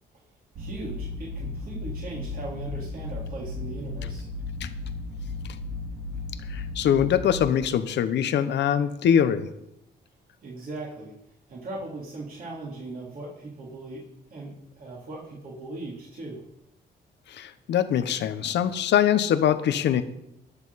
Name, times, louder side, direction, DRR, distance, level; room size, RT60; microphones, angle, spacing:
voice 1, 0.6-4.3 10.4-11.1 11.5-14.0 14.3-16.4, right 2 dB, 55° right, -4 dB, 3.5 m, -38 dB
sound 1, 0.6-7.4, left 3 dB, 90° right, 6.0 m, -35 dB
voice 2, 6.5-9.5 17.3-20.0, left 9 dB, 75° left, 11 dB, 1.0 m, -23 dB
21.0 x 7.2 x 4.2 m, 0.83 s
cardioid pair, 100°, 18 cm